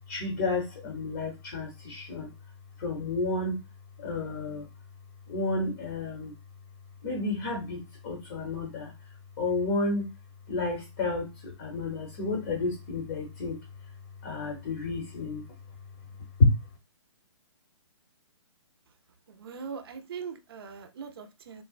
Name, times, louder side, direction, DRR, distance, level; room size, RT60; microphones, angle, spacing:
voice 1, 0.1-2.5 2.8-3.6 4.0-4.7 5.3-6.3 7.0-10.1 10.5-16.7, left 3 dB, 30° left, 0.8 m, -31 dB
voice 2, 19.3-21.6, right 6 dB, 55° right, 0.5 m, -41 dB
3.8 x 2.1 x 2.4 m
hypercardioid pair, 160°, 15 cm